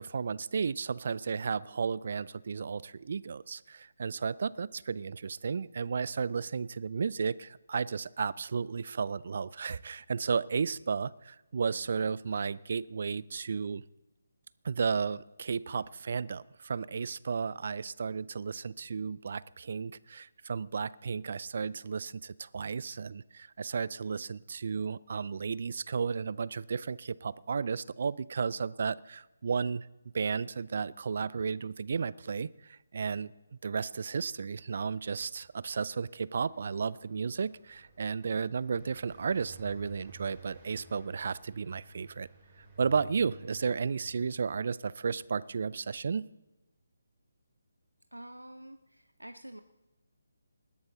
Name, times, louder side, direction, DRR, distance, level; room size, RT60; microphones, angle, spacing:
voice 1, 0.0-13.8 14.6-29.9 30.1-33.3 33.6-42.3 42.8-46.3, right 5 dB, 45° right, 21 dB, 0.4 m, -33 dB
Car passing by, 34.7-45.7, right 3 dB, 20° right, 5.4 m, -56 dB
voice 2, 48.1-49.6, right 1 dB, 85° right, 9 dB, 0.7 m, -47 dB
19.5 x 11.0 x 3.9 m, 1.0 s
figure-of-eight pair, 150°, 0 cm